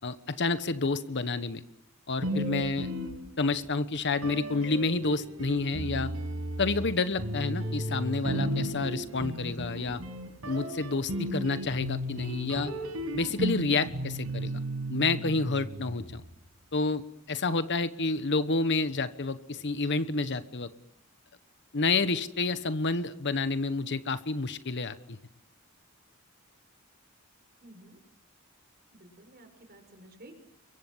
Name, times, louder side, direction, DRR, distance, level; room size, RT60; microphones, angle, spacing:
voice 1, 0.0-1.6 2.1-2.9 3.4-6.1 6.6-10.0 10.4-12.7 13.1-14.5 14.9-16.2 16.7-20.7 21.7-25.2, left 3 dB, 55° left, 12 dB, 1.2 m, -29 dB
sound 1, 2.2-3.7 4.2-16.4, equal, 85° right, 6.1 m, -35 dB
voice 2, 27.6-28.0 29.0-30.4, right 1 dB, 45° right, 6 dB, 6.4 m, -52 dB
29.5 x 23.5 x 7.4 m, 0.82 s
head